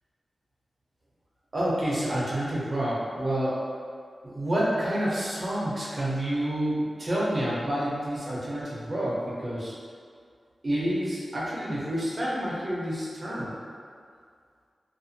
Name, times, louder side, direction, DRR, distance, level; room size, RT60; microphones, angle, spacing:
voice 1, 1.5-3.6 4.2-9.7 10.6-13.6, right 1 dB, 45° right, -7 dB, 0.6 m, -28 dB
2.4 x 2.3 x 2.6 m, 2.2 s
wide cardioid pair, 90°, 0 cm